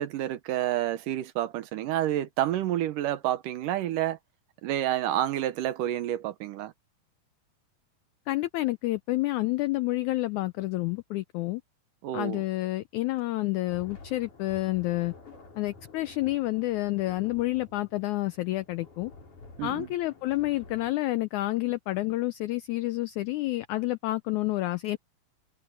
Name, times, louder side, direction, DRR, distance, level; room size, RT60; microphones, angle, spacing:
voice 1, 0.0-4.2 4.6-6.7 12.0-12.4 19.6-19.9, right 12 dB, 75° right, 2.4 m, -29 dB
voice 2, 8.3-11.6 12.1-15.1 15.6-19.1 19.6-25.0, left 18 dB, 90° left, 1.7 m, -29 dB
sound 1, 13.7-20.9, left 3 dB, 60° left, 7.4 m, -51 dB
omnidirectional pair, 4.1 m